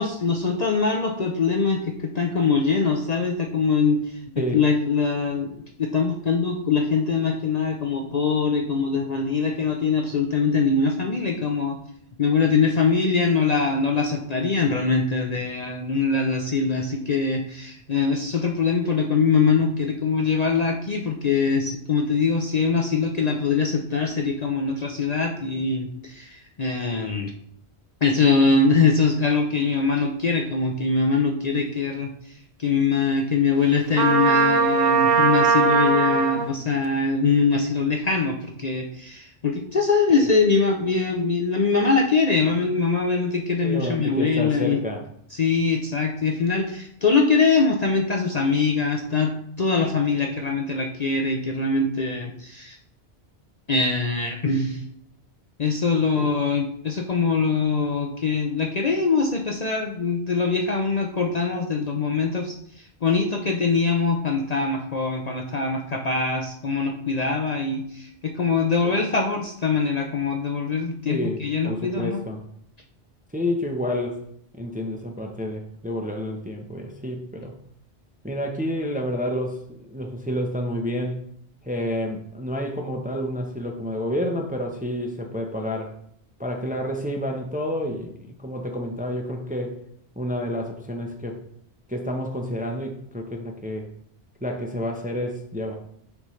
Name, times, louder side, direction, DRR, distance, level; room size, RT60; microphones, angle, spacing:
voice 1, 0.0-4.0 4.3-11.8 12.2-27.3 28.0-32.1 32.6-44.8 45.3-52.8 53.7-54.8 55.6-62.6 63.0-72.2, left 4 dB, 45° left, 2 dB, 0.6 m, -23 dB
Trumpet, 33.9-36.5, right 5 dB, 45° right, 0.7 m, -19 dB
voice 2, 43.6-45.0 56.2-56.3 71.1-71.4 71.6-72.4 73.3-74.2 74.5-77.5 78.2-81.2 81.6-85.9 86.4-89.8 90.2-91.4 91.9-93.9 94.4-95.8, equal, 10° right, 2 dB, 0.6 m, -29 dB
6.8 x 5.3 x 3.1 m, 0.68 s
omnidirectional pair, 1.1 m